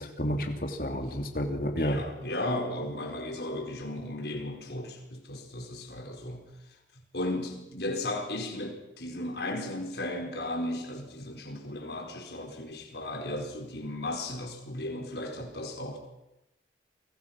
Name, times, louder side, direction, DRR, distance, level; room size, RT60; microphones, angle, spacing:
voice 1, 0.0-2.0, equal, 50° left, 4 dB, 3.1 m, -30 dB
voice 2, 1.8-16.0, left 1 dB, 75° left, 3 dB, 4.9 m, -35 dB
30.0 x 23.0 x 6.1 m, 0.93 s
head